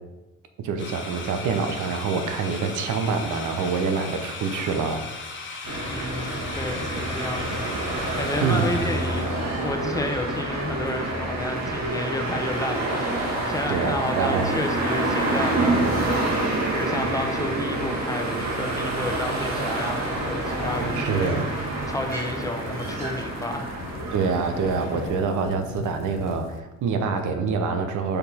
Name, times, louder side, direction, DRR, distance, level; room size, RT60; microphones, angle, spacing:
voice 1, 0.6-5.0 8.4-8.7 13.7-14.6 20.9-21.5 24.1-28.2, right 5 dB, 80° right, 7 dB, 0.8 m, -26 dB
sound 1, 0.8-9.6, left 3 dB, 40° left, 1.1 m, -37 dB
sound 2, 5.6-25.1, right 2 dB, 60° right, 1.7 m, -27 dB
voice 2, 5.9-9.3 9.6-23.8, left 1 dB, 10° left, 4 dB, 0.8 m, -31 dB
sound 3, 20.4-26.6, left 7 dB, 60° left, 0.5 m, -41 dB
5.5 x 4.2 x 4.2 m, 1.1 s
cardioid pair, 90°, 30 cm